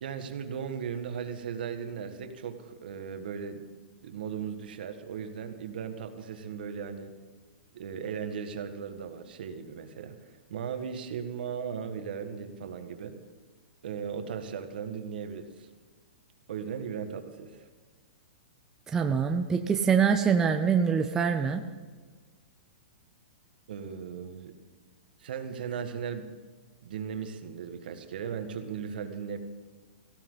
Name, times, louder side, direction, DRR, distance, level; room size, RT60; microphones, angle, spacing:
voice 1, 0.0-3.7 4.0-7.1 7.7-13.1 13.8-15.7 16.5-17.7 23.7-24.5 25.2-26.3 26.8-29.4, right 7 dB, 55° right, 7 dB, 1.8 m, -37 dB
voice 2, 18.9-21.6, right 6 dB, 10° right, 4 dB, 0.5 m, -24 dB
18.5 x 15.5 x 4.0 m, 1.5 s
hypercardioid pair, 175°, 6 cm